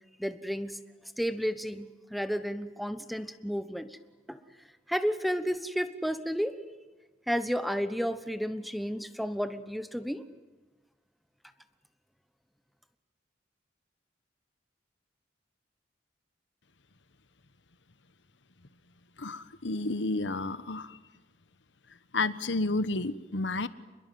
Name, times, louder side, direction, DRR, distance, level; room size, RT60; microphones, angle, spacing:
voice 1, 0.2-0.8 1.2-4.0 4.3-4.4 4.9-6.6 7.3-10.2, equal, ahead, 12 dB, 1.1 m, -32 dB
voice 2, 19.2-21.0 22.1-23.7, left 2 dB, 90° left, 14 dB, 1.2 m, -31 dB
29.0 x 21.5 x 9.4 m, 1.2 s
head